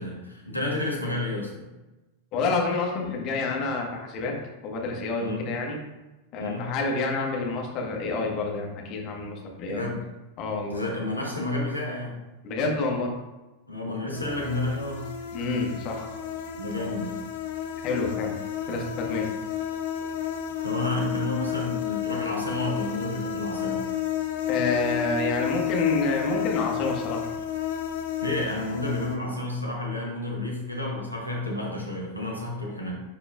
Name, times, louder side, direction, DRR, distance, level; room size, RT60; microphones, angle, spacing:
voice 1, 0.0-1.6 5.2-5.5 6.4-6.7 9.7-10.0 10.7-12.2 13.7-15.1 16.6-17.2 20.6-23.8 28.2-32.9, left 2 dB, 85° left, -2 dB, 1.6 m, -30 dB
voice 2, 2.3-4.3 4.6-5.8 6.3-9.8 10.4-10.8 12.4-13.1 15.3-16.1 17.8-18.4 18.7-19.2 24.5-27.3, left 3 dB, 40° left, 0 dB, 1.5 m, -28 dB
sound 1, 14.1-29.2, left 10 dB, 55° left, 0.8 m, -31 dB
10.0 x 4.7 x 2.5 m, 1.1 s
figure-of-eight pair, 90°, 0 cm